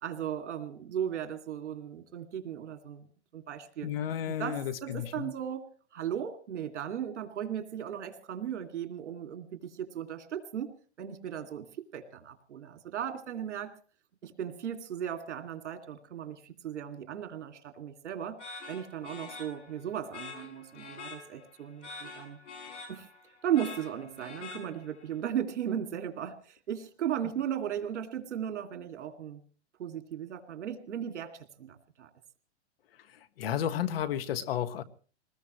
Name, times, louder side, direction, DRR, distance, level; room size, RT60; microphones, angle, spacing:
voice 1, 0.0-3.1 3.3-3.9 4.3-5.7 5.9-10.7 11.0-11.7 11.9-13.7 14.2-18.4 18.7-22.4 22.9-23.1 23.4-29.4 29.8-32.1, right 9 dB, 90° right, 7 dB, 2.5 m, -36 dB
voice 2, 3.8-5.3 33.1-34.8, left 10 dB, 55° left, 13 dB, 1.5 m, -33 dB
sound 1, 18.4-25.1, left 4 dB, 90° left, 6.7 m, -46 dB
23.0 x 20.0 x 3.1 m, 0.39 s
supercardioid pair, 165°, 34 cm